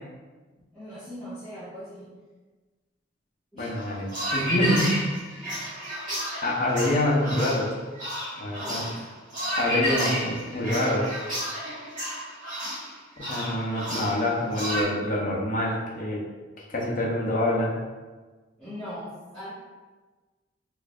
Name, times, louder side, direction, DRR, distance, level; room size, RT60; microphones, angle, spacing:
voice 1, 0.7-2.1 3.5-3.7 8.6-8.9 18.6-19.5, equal, ahead, -18 dB, 1.5 m, -39 dB
voice 2, 3.6-5.0 6.4-7.8 8.4-8.8 9.5-11.1 13.2-16.3 16.7-17.7, left 1 dB, 45° left, -3 dB, 0.7 m, -26 dB
sound 1, 3.8-14.8, equal, 40° right, 1.4 m, -31 dB
4.3 x 2.6 x 2.4 m, 1.3 s
head